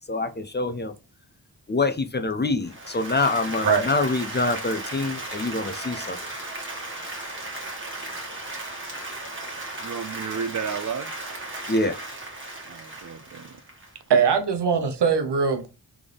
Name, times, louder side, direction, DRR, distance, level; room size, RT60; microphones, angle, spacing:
voice 1, 0.1-0.9 1.7-6.2 11.7-12.0, left 3 dB, 25° left, 0.5 m, -25 dB
Applause, 2.6-14.3, right 2 dB, 30° right, 1.8 m, -36 dB
voice 2, 9.8-11.2 12.6-13.6 14.7-14.9, right 6 dB, 45° right, 0.6 m, -33 dB
voice 3, 14.1-15.7, right 6 dB, 80° right, 1.0 m, -21 dB
3.7 x 3.5 x 3.4 m
cardioid pair, 60°, 40 cm